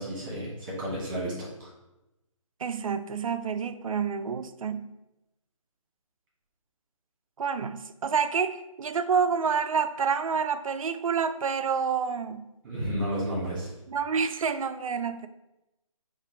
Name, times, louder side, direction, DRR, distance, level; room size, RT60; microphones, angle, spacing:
voice 1, 0.0-1.7 12.6-13.7, equal, 20° right, -5 dB, 1.5 m, -32 dB
voice 2, 2.6-4.9 7.4-12.4 13.9-15.3, right 6 dB, 75° right, 10 dB, 0.4 m, -28 dB
4.2 x 2.5 x 3.9 m, 0.93 s
hypercardioid pair, 165°, 18 cm